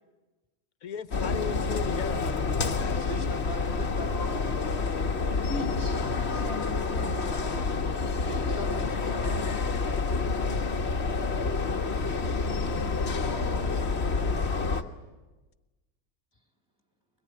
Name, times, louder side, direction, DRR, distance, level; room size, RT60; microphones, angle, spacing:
voice 1, 0.8-3.1, left 7 dB, 80° left, 1.5 m, -37 dB
sound 1, 1.1-14.8, left 4 dB, 50° left, 1.5 m, -28 dB
voice 2, 3.0-4.6 7.9-9.4, right 2 dB, 15° left, 3.1 m, -42 dB
voice 3, 5.4-6.0 6.3-7.3 12.1-14.7, equal, 85° right, 5.8 m, -42 dB
23.0 x 21.5 x 9.6 m
omnidirectional pair, 1.5 m